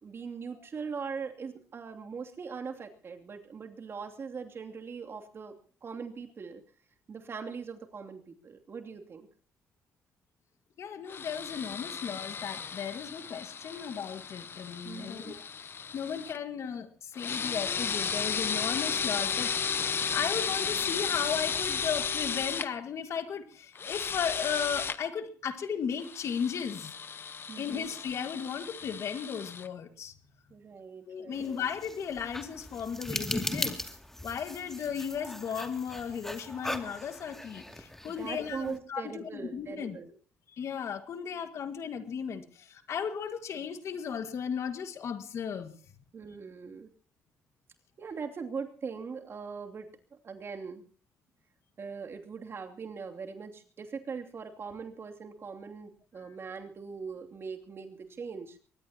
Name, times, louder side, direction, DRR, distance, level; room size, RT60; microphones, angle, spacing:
voice 1, 0.0-5.6 5.8-6.6 7.1-9.3 13.7-13.9 14.8-15.4 27.5-27.9 30.5-31.4 38.2-40.1 46.1-46.9 48.0-50.8 51.8-58.6, right 5 dB, 50° right, 4 dB, 2.7 m, -41 dB
voice 2, 10.8-15.5 15.9-26.9 27.6-30.1 31.1-33.8 34.2-40.0 40.5-45.7, left 7 dB, 65° left, 9 dB, 1.8 m, -35 dB
sound 1, 11.1-16.4 17.1-22.7 23.8-25.0 26.0-29.7, left 6 dB, 45° left, 1.0 m, -34 dB
sound 2, 31.3-38.8, left 1 dB, 5° left, 2.4 m, -39 dB
23.0 x 19.5 x 2.9 m, 0.40 s
cardioid pair, 75°, 5 cm